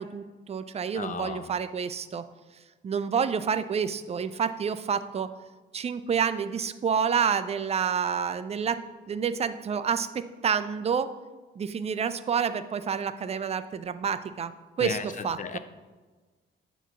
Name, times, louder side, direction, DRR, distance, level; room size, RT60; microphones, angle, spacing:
voice 1, 0.0-2.3 2.8-5.3 5.7-8.8 9.1-11.1 11.6-14.5 14.8-15.6, right 7 dB, 30° right, 12 dB, 0.4 m, -28 dB
voice 2, 1.0-1.5 14.8-15.1 15.4-15.6, left 6 dB, 40° left, 10 dB, 0.5 m, -34 dB
8.0 x 3.0 x 5.8 m, 1.3 s
cardioid pair, 90°, 20 cm